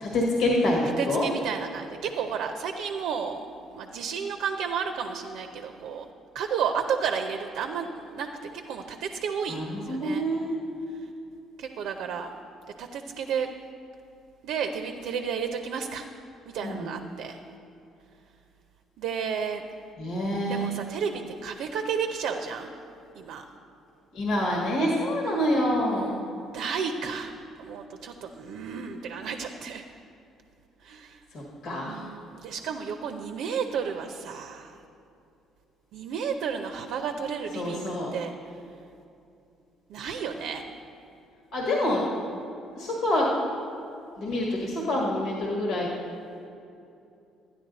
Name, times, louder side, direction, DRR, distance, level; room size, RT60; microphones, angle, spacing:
voice 1, 0.0-1.2 9.5-10.5 16.6-16.9 20.0-20.7 24.1-26.1 31.3-32.0 37.5-38.1 41.5-42.0 42.8-43.3 44.2-45.9, left 1 dB, 75° left, -2 dB, 1.6 m, -26 dB
voice 2, 1.0-3.5 3.7-6.0 6.3-8.3 8.7-10.3 10.9-11.1 11.6-12.3 12.8-13.5 14.4-16.1 16.5-17.4 19.0-19.6 20.5-22.7 23.1-23.4 25.9-29.8 30.8-31.2 31.8-34.8 35.9-38.3 39.9-40.6, right 6 dB, 75° right, 6 dB, 0.6 m, -32 dB
12.0 x 9.9 x 4.0 m, 2.7 s
supercardioid pair, 70°, 0 cm